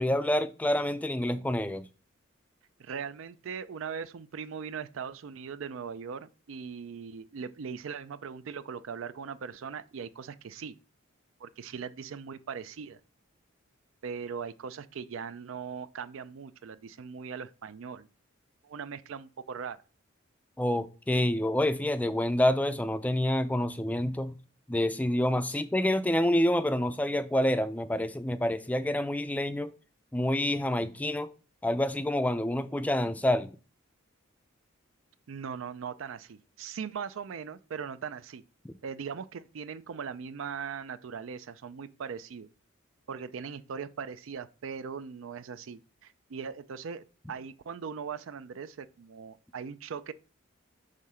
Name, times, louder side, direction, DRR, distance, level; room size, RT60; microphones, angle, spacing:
voice 1, 0.0-1.9 20.6-24.4 24.7-29.7 30.1-31.3 31.6-33.5 38.6-38.7, left 1 dB, 5° left, 0.3 m, -27 dB
voice 2, 2.8-10.7 11.4-13.0 14.0-18.1 18.6-19.8 35.3-38.4 38.8-42.5 43.1-50.1, right 6 dB, 75° right, 0.4 m, -40 dB
6.6 x 3.6 x 5.5 m
head